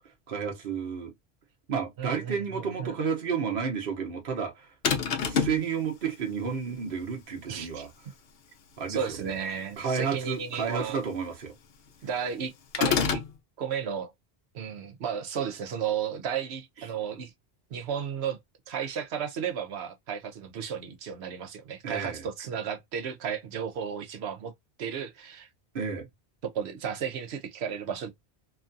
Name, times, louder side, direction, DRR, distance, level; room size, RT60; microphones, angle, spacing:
voice 1, 0.3-1.1 1.7-4.7 5.2-7.9 8.8-9.0 9.3-9.4 9.8-11.5 21.8-22.2 25.7-26.1, right 6 dB, 60° right, 1.1 m, -31 dB
voice 2, 2.0-3.0 7.5-7.9 8.9-11.0 12.0-12.5 12.8-13.2 13.6-14.1 14.5-17.3 17.7-18.4 18.7-24.5 24.8-25.5 26.4-28.1, right 7 dB, 80° right, 1.0 m, -33 dB
sound 1, 4.8-5.6 12.7-13.3, left 6 dB, 70° left, 0.8 m, -26 dB
3.0 x 2.3 x 2.5 m
omnidirectional pair, 1.1 m